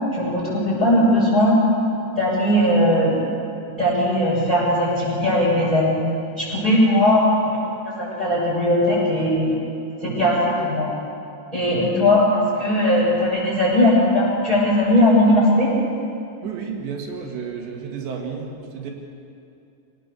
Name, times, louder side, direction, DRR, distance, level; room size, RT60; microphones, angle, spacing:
voice 1, 0.1-1.6 2.2-3.2 3.7-6.0 6.4-9.5 10.0-10.9 11.5-15.7, left 1 dB, 5° left, -7 dB, 7.5 m, -19 dB
voice 2, 16.4-18.9, right 6 dB, 70° right, 1 dB, 4.2 m, -31 dB
25.5 x 19.0 x 7.0 m, 2.6 s
omnidirectional pair, 5.3 m